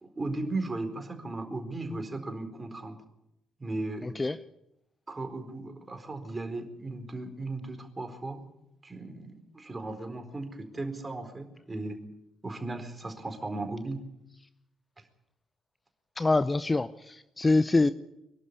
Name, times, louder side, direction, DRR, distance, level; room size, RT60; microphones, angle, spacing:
voice 1, 0.0-3.0 3.6-4.1 5.1-8.4 8.8-12.0 12.4-14.0 15.0-15.1, right 2 dB, 25° right, 6 dB, 4.4 m, -36 dB
voice 2, 4.0-4.4 16.2-17.9, left 2 dB, 25° left, 15 dB, 0.7 m, -25 dB
24.0 x 12.0 x 9.9 m, 0.88 s
figure-of-eight pair, 45°, 0 cm